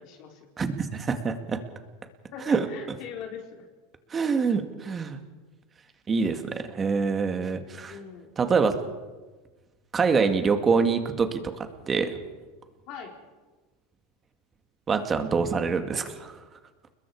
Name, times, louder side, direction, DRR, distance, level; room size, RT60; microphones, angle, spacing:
voice 1, 0.0-0.5 2.3-3.7 7.8-8.3 12.9-13.2, left 7 dB, 55° left, 1 dB, 4.3 m, -41 dB
voice 2, 0.6-1.6 2.5-2.7 4.1-5.2 6.1-7.9 8.4-8.8 9.9-12.2 14.9-16.3, right 5 dB, 20° right, 7 dB, 2.2 m, -25 dB
29.5 x 21.0 x 4.9 m, 1.3 s
supercardioid pair, 135°, 0 cm